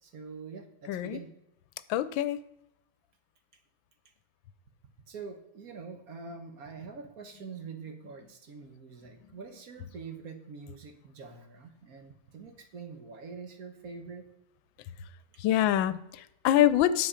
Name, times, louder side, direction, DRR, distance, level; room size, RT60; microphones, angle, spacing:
voice 1, 0.0-1.3 5.1-14.3, right 5 dB, 55° right, 6 dB, 1.3 m, -45 dB
voice 2, 0.9-1.2 1.9-2.4 15.4-17.1, left 12 dB, 85° left, 15 dB, 1.3 m, -25 dB
9.5 x 7.1 x 4.9 m, 0.84 s
omnidirectional pair, 2.1 m